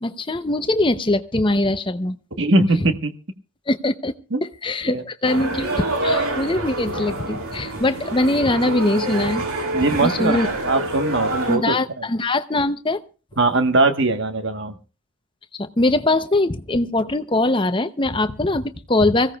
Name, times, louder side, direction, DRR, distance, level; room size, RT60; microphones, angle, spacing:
voice 1, 0.0-2.2 3.7-4.1 4.4-9.5 9.9-10.5 11.5-13.0 15.6-19.4, left 2 dB, 20° left, 10 dB, 0.7 m, -22 dB
voice 2, 2.4-3.1 4.3-4.4 4.9-5.0 9.7-12.0 13.4-14.7, right 2 dB, 55° right, 6 dB, 1.3 m, -20 dB
sound 1, 5.2-11.6, right 2 dB, 80° right, 2.9 m, -26 dB
25.0 x 16.0 x 2.3 m, 0.34 s
head